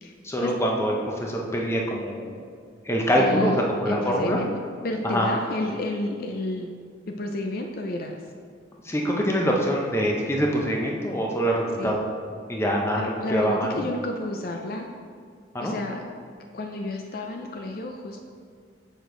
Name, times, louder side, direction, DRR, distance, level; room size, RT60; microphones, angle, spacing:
voice 1, 0.2-2.4 2.8-4.4 5.0-5.3 8.8-12.0 12.5-13.8 15.5-15.7, equal, 15° left, -1 dB, 0.7 m, -24 dB
voice 2, 3.1-4.5 4.8-6.7 7.1-8.2 11.8-12.0 13.0-14.9 15.6-16.1 16.5-18.2, left 2 dB, 50° left, 3 dB, 0.4 m, -31 dB
6.3 x 5.1 x 3.8 m, 2.1 s
head